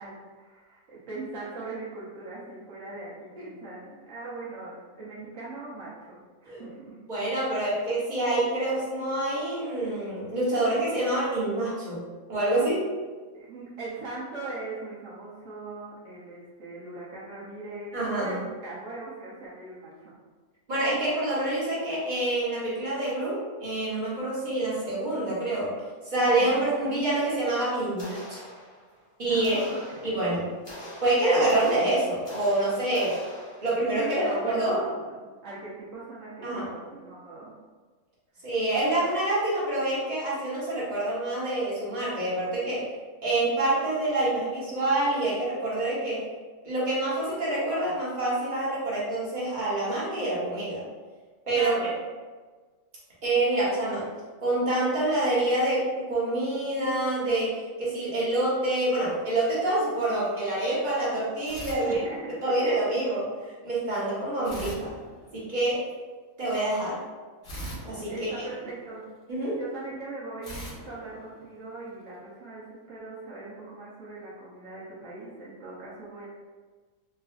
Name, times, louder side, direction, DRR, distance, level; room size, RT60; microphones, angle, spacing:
voice 1, 0.0-7.0 13.3-20.1 26.4-26.6 29.3-30.2 33.9-35.0 35.4-37.5 51.5-51.9 61.8-62.6 68.1-69.0 69.6-76.3, right 2 dB, 65° right, -7 dB, 1.1 m, -40 dB
voice 2, 7.1-12.0 12.3-12.9 17.9-18.4 20.7-25.7 26.0-28.4 29.2-29.6 30.0-30.4 31.0-33.2 33.6-34.8 36.4-36.7 38.4-42.9 43.2-46.2 46.6-50.8 51.5-51.7 53.2-54.1 54.4-62.0 62.4-63.3 63.6-64.9 65.3-65.8 66.4-67.0 67.8-68.3 69.3-69.6, right 1 dB, 35° right, -8 dB, 1.1 m, -26 dB
sound 1, 28.0-29.0 29.4-33.9, equal, 30° left, 0.5 m, -44 dB
sound 2, 61.4-62.6 64.4-65.8 67.4-69.1 70.4-72.0, right 1 dB, 60° left, 1.4 m, -42 dB
3.8 x 2.4 x 2.4 m, 1.4 s
omnidirectional pair, 1.5 m